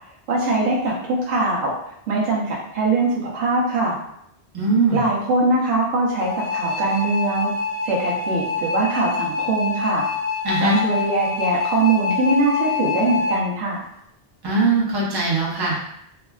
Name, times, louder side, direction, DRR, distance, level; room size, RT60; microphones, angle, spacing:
voice 1, 0.3-1.8 2.1-4.0 4.9-7.5 7.8-10.0 10.6-13.8, right 2 dB, 80° right, -5 dB, 0.9 m, -22 dB
voice 2, 4.5-5.0 10.4-10.8 14.4-15.8, right 3 dB, 25° right, -5 dB, 0.6 m, -20 dB
sound 1, 6.2-13.4, left 4 dB, 45° left, 0.9 m, -26 dB
3.4 x 2.1 x 2.3 m, 0.75 s
omnidirectional pair, 1.1 m